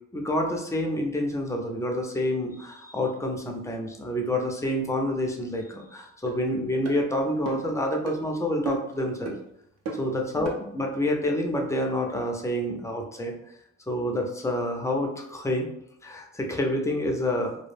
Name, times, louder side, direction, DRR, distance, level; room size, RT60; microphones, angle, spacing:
voice 1, 0.1-9.4 9.9-13.3 13.9-15.7 16.0-17.6, left 1 dB, 10° left, 1 dB, 0.4 m, -28 dB
sound 1, 6.3-6.4 6.8-7.0 7.5-7.7 8.0-8.2 8.7-9.0 9.3-9.4 9.9-10.1 10.4-10.6, right 2 dB, 60° right, 0.6 m, -34 dB
2.2 x 2.0 x 3.2 m, 0.76 s
cardioid pair, 90°, 30 cm